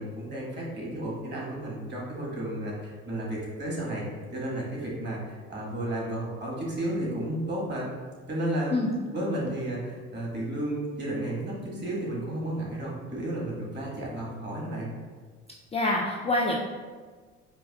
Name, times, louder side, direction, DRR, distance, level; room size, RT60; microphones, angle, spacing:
voice 1, 0.0-4.0 4.3-7.9 8.3-8.8 9.1-14.9, right 1 dB, 35° right, -4 dB, 1.5 m, -32 dB
voice 2, 15.7-16.6, left 2 dB, 20° left, -3 dB, 0.4 m, -26 dB
4.7 x 2.2 x 2.3 m, 1.5 s
hypercardioid pair, 65°, 31 cm